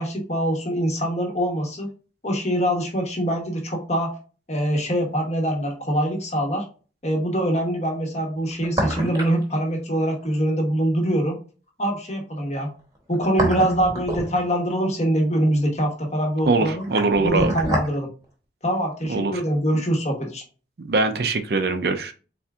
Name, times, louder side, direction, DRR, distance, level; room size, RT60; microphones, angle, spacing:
voice 1, 0.0-1.9 2.2-4.2 4.5-6.7 7.0-11.4 11.8-12.7 13.1-16.8 17.2-18.1 18.6-20.4, right 1 dB, 35° left, 1 dB, 1.2 m, -24 dB
sound 1, 5.2-5.3 8.4-9.4 9.7-9.8 12.9-14.7 16.4-17.9 18.2-18.3, right 1 dB, 20° right, 1.0 m, -27 dB
voice 2, 16.5-17.5 19.1-19.3 20.8-22.1, right 3 dB, 55° right, 8 dB, 0.5 m, -22 dB
4.3 x 3.4 x 2.4 m, 0.35 s
head